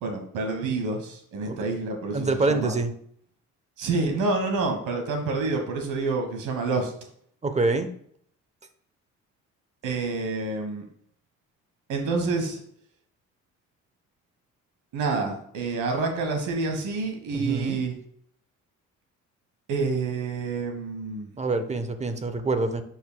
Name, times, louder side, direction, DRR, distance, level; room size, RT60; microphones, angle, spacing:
voice 1, 0.0-2.8 3.8-6.9 9.8-10.8 11.9-12.6 14.9-17.9 19.7-21.3, right 3 dB, 85° right, 3 dB, 1.4 m, -28 dB
voice 2, 2.1-2.9 7.4-7.9 17.3-17.8 21.4-22.8, right 3 dB, 20° right, 9 dB, 0.9 m, -26 dB
10.5 x 4.7 x 2.3 m, 0.64 s
cardioid pair, 90°, 30 cm